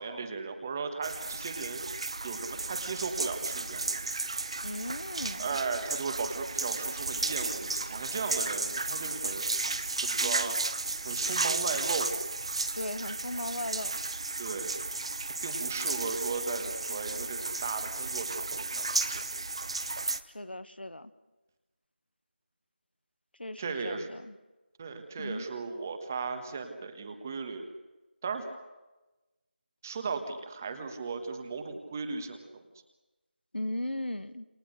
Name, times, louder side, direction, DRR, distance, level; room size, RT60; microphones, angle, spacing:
voice 1, 0.0-1.8 2.2-3.8 5.4-9.4 10.0-10.6 11.0-12.1 14.4-14.7 15.4-19.2 23.6-24.1 24.8-27.7 28.2-28.5 29.8-32.6, right 4 dB, 15° right, 8 dB, 1.4 m, -36 dB
sound 1, 1.0-20.2, right 3 dB, 30° right, 0.8 m, -33 dB
voice 2, 4.6-5.6 12.7-14.0 20.3-21.1 23.4-24.4 25.2-25.5 33.5-34.5, left 1 dB, 65° left, 12 dB, 1.5 m, -37 dB
28.0 x 24.5 x 6.5 m, 1.1 s
figure-of-eight pair, 170°, 6 cm